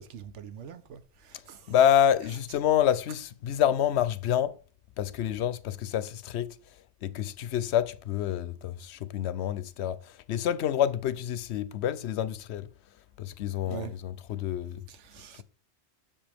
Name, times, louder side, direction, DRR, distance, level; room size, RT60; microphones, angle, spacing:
voice 1, 0.0-1.7 13.7-13.9 14.9-15.4, right 8 dB, 85° right, 1.1 m, -43 dB
voice 2, 1.7-4.6 5.0-6.6 7.0-12.7 13.2-14.8, left 10 dB, 75° left, 0.8 m, -27 dB
7.6 x 7.0 x 3.4 m
omnidirectional pair, 1.2 m